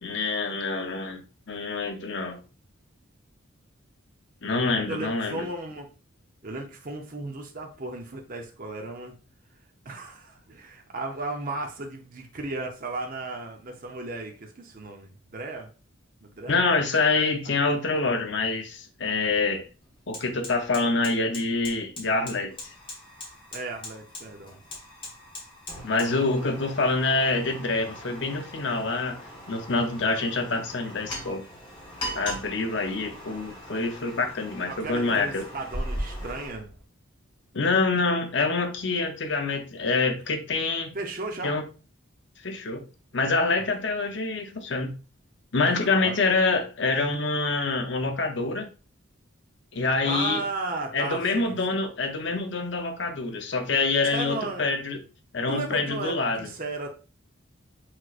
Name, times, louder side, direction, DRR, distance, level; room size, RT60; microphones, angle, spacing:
voice 1, 0.0-1.2 1.5-2.4 4.4-5.5 16.5-19.6 20.1-22.5 25.8-29.2 29.5-31.4 32.1-35.4 37.5-40.9 41.4-41.6 42.4-42.8 43.1-44.9 45.5-48.7 49.7-50.4 50.9-55.0 55.3-56.5, left 3 dB, 60° left, 6 dB, 0.7 m, -26 dB
voice 2, 4.9-5.9 6.4-9.1 9.8-15.7 16.2-16.9 23.5-24.6 34.7-36.7 40.9-41.6 43.6-43.7 45.6-46.2 50.0-51.8 54.0-54.7 55.5-56.9, right 2 dB, 40° right, 2 dB, 0.7 m, -35 dB
Fire, 19.1-19.2 19.5-36.5, left 1 dB, 25° left, 1.4 m, -42 dB
sound 1, 31.7-36.8, equal, 70° right, 1.7 m, -39 dB
5.9 x 3.1 x 2.4 m, 0.33 s
head